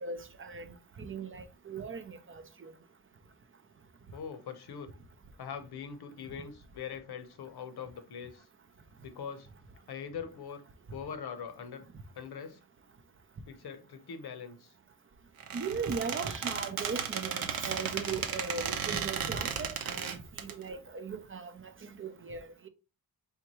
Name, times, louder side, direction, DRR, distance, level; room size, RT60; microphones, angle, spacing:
voice 1, 0.0-2.7 15.5-22.7, right 5 dB, 35° right, 0.5 m, -38 dB
voice 2, 4.1-4.9 5.4-8.5 9.0-9.5 9.9-10.6 10.9-11.8 12.1-12.6 13.5-14.7, left 7 dB, 85° left, 0.9 m, -42 dB
Squeak, 15.4-20.5, right 7 dB, 70° right, 0.7 m, -35 dB
4.4 x 3.4 x 3.0 m
wide cardioid pair, 155°, 37 cm